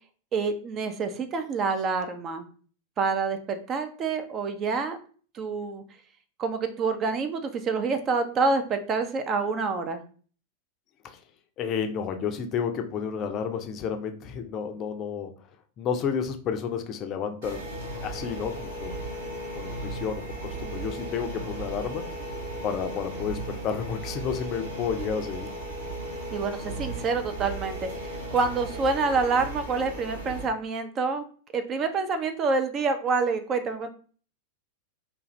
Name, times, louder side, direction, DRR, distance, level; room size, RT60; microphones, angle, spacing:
voice 1, 0.3-2.4 3.0-5.0 5.3-5.8 6.4-10.0 26.3-31.2 31.5-33.9, right 4 dB, 30° right, 8 dB, 0.4 m, -27 dB
voice 2, 11.6-15.3 15.8-17.7 18.0-18.9 19.6-22.0 22.6-25.5, left 7 dB, 35° left, 6 dB, 0.4 m, -31 dB
sound 1, 17.4-30.5, right 1 dB, 65° right, 0.7 m, -36 dB
2.5 x 2.3 x 3.0 m, 0.42 s
figure-of-eight pair, 90°, 0 cm